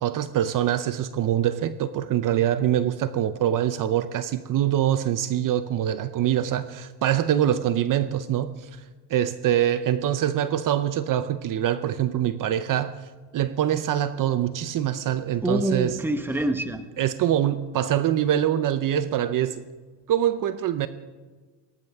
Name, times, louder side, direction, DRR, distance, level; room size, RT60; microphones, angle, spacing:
voice 1, 0.0-8.7 9.1-13.0 13.3-16.0 17.0-19.6 20.1-20.9, right 11 dB, 50° right, 0.7 m, -24 dB
voice 2, 15.4-16.8, right 1 dB, 5° right, 1.1 m, -25 dB
20.0 x 18.0 x 3.5 m
cardioid pair, 110°, 41 cm